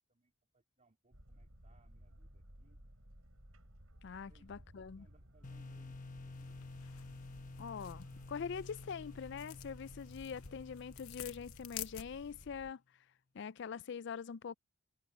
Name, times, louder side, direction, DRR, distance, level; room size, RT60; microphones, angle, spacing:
voice 1, 0.0-2.8 4.2-6.6, right 2 dB, 35° right, 2.9 m, -71 dB
Boat Water vehicle, 1.1-12.7, equal, 85° right, 6.1 m, -58 dB
voice 2, 4.0-5.1 7.6-12.8 13.3-14.6, left 6 dB, 55° left, 0.4 m, -44 dB
sound 1, 5.4-12.2, left 3 dB, 40° left, 1.1 m, -51 dB
sound 2, 6.3-12.5, left 12 dB, 85° left, 1.1 m, -51 dB
head